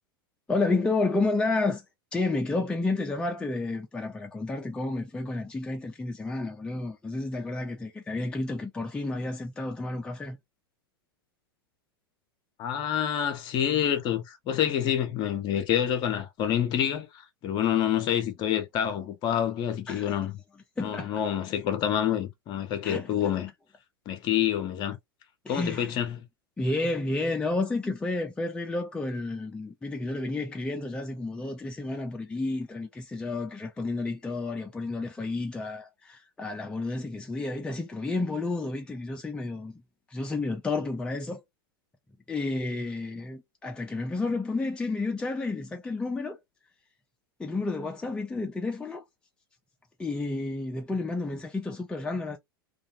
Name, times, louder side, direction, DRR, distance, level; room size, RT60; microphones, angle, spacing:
voice 1, 0.5-1.8 2.1-10.4 19.9-20.2 20.8-21.1 22.8-23.1 25.4-25.9 26.6-39.8 40.1-41.4 42.3-46.4 47.4-49.0 50.0-52.4, left 2 dB, 10° left, 0.4 m, -31 dB
voice 2, 12.6-20.4 20.8-23.5 24.1-25.0 25.5-26.2, left 10 dB, 35° left, 0.7 m, -27 dB
2.5 x 2.3 x 2.7 m
figure-of-eight pair, 90°, 13 cm